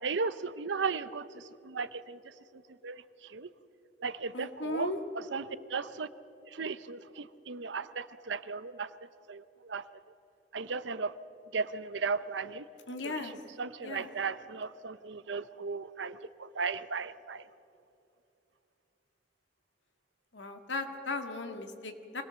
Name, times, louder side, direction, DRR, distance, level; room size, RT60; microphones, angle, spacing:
voice 1, 0.0-2.2 2.8-3.5 4.0-4.9 5.1-6.1 6.5-8.9 9.3-9.8 10.5-11.1 11.5-12.6 13.0-13.3 13.6-17.4, right 4 dB, 85° right, 14 dB, 0.7 m, -36 dB
voice 2, 4.3-5.0 12.9-13.3 13.8-14.1 20.3-22.2, left 2 dB, 80° left, 5 dB, 1.8 m, -37 dB
24.5 x 18.0 x 6.9 m, 2.6 s
head